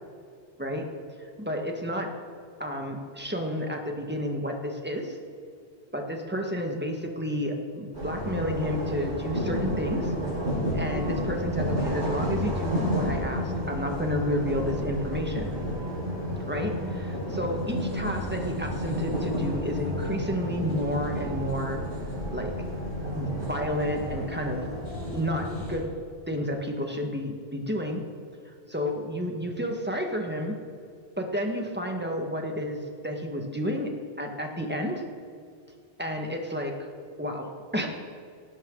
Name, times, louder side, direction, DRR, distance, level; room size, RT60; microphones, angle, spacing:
voice 1, 1.2-2.1 2.6-5.2 5.9-10.1 10.7-15.5 16.5-21.8 22.3-22.5 23.1-24.7 25.1-25.9 26.3-28.0 28.7-30.6 31.2-35.0 36.0-36.7 37.2-37.9, equal, 10° right, 2 dB, 1.8 m, -31 dB
sound 1, 7.9-25.8, equal, 80° right, 5.7 m, -31 dB
18.0 x 18.0 x 4.0 m, 2.2 s
omnidirectional pair, 1.1 m